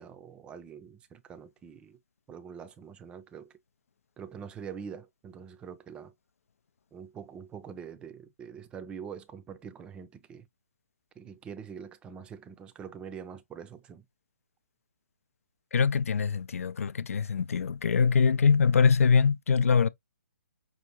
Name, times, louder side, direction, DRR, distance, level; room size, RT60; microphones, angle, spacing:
voice 1, 0.0-2.0 2.3-3.5 4.2-6.1 6.9-10.5 11.2-14.1, right 7 dB, 15° right, 0.4 m, -44 dB
voice 2, 15.7-19.9, left 5 dB, 70° left, 0.4 m, -23 dB
5.6 x 2.5 x 2.9 m
hypercardioid pair, 140°, 8 cm